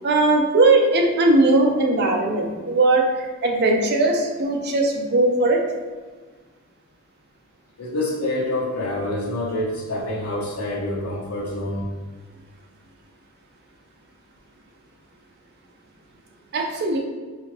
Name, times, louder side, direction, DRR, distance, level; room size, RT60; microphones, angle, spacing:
voice 1, 0.0-5.6 16.5-17.0, right 2 dB, 50° right, 1 dB, 0.5 m, -19 dB
voice 2, 7.8-11.9, left 1 dB, 85° left, -5 dB, 0.8 m, -27 dB
4.1 x 2.6 x 3.0 m, 1.4 s
head